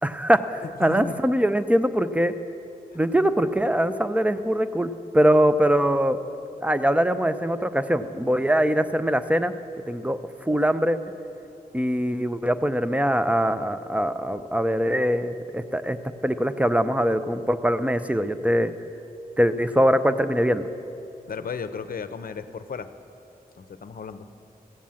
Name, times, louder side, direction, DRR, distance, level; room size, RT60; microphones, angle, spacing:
voice 1, 0.0-2.3 2.9-6.2 6.6-9.5 9.9-10.2 10.5-11.0 11.7-16.0 16.2-18.7 19.4-20.7, equal, 10° right, 11 dB, 0.5 m, -22 dB
voice 2, 0.6-1.2 21.3-22.9 23.6-24.3, left 5 dB, 65° left, 10 dB, 0.6 m, -34 dB
16.0 x 7.1 x 7.5 m, 2.8 s
wide cardioid pair, 115°, 16 cm